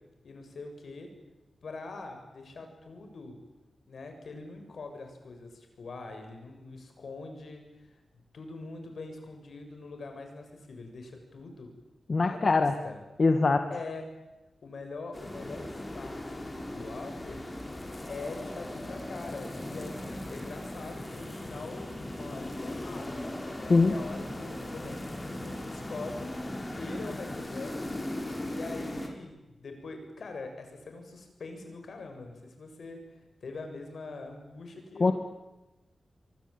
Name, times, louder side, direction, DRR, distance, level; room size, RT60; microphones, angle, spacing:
voice 1, 0.2-1.1 1.6-3.4 3.9-11.7 12.3-13.0 13.7-14.1 14.6-17.4 18.1-23.3 23.6-26.3 26.7-28.0 28.4-35.1, left 3 dB, 70° left, 5 dB, 7.3 m, -43 dB
voice 2, 12.1-12.7 13.2-13.7 23.7-23.9 35.0-35.1, left 3 dB, 45° left, 7 dB, 1.9 m, -22 dB
sound 1, 15.1-29.1, left 1 dB, 25° left, 5.0 m, -38 dB
25.5 x 24.0 x 9.1 m, 1.0 s
wide cardioid pair, 95°, 0 cm